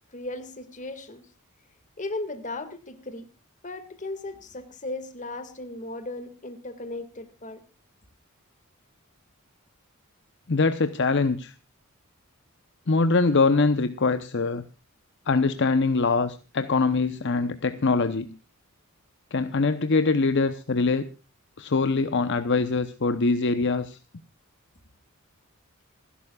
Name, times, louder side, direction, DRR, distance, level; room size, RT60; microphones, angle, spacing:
voice 1, 0.1-1.2 2.0-3.3 3.6-7.6, left 2 dB, 35° left, 10 dB, 2.0 m, -36 dB
voice 2, 10.5-11.5 12.9-14.6 15.3-18.3 19.3-21.0 21.6-24.0, left 3 dB, 55° left, 10 dB, 0.8 m, -23 dB
27.5 x 11.5 x 2.3 m, 0.32 s
head